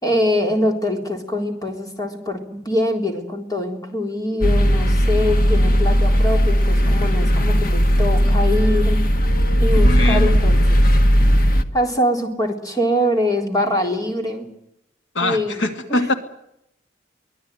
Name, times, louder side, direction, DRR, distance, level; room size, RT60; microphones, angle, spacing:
voice 1, 0.0-9.1 9.6-10.8 11.7-14.5 15.2-15.6 15.9-16.1, left 1 dB, 20° left, 3 dB, 4.0 m, -23 dB
sound 1, 4.4-11.6, equal, 50° left, 1.6 m, -16 dB
voice 2, 9.8-10.4 15.1-16.1, left 2 dB, 80° left, 6 dB, 2.2 m, -23 dB
24.0 x 17.5 x 9.4 m, 0.81 s
head